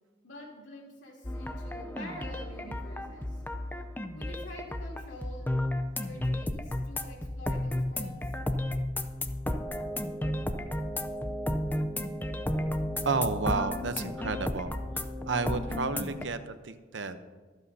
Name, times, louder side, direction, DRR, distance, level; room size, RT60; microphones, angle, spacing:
voice 1, 0.2-3.4 4.1-5.5 6.0-8.2, left 1 dB, 75° left, -1 dB, 3.1 m, -46 dB
sound 1, 1.2-16.3, left 1 dB, 10° left, 0.5 m, -33 dB
voice 2, 13.0-14.7 15.3-17.2, right 4 dB, 75° right, 10 dB, 0.8 m, -31 dB
24.0 x 8.1 x 2.8 m, 1.4 s
head